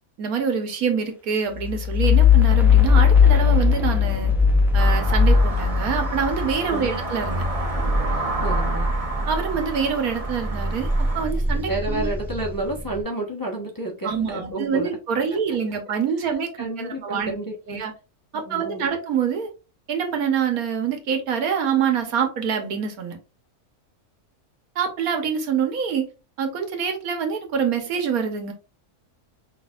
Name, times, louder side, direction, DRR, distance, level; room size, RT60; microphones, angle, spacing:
voice 1, 0.2-4.3 4.7-7.4 9.3-10.9 11.1-12.1 14.0-16.5 16.8-17.3 17.7-17.9 18.3-19.5 19.9-23.2 24.7-26.1 26.4-28.5, right 7 dB, 75° right, 5 dB, 1.4 m, -25 dB
sound 1, 1.6-9.8 10.2-12.8, left 5 dB, ahead, 0.5 m, -19 dB
sound 2, 4.8-11.3, right 2 dB, 30° right, 0.7 m, -31 dB
voice 2, 6.7-7.0 8.4-8.9 11.7-14.9 15.3-15.6 16.2-16.3 16.6-17.8 18.5-18.9, right 1 dB, 15° left, -1 dB, 0.9 m, -30 dB
6.0 x 3.3 x 2.4 m, 0.31 s
omnidirectional pair, 1.6 m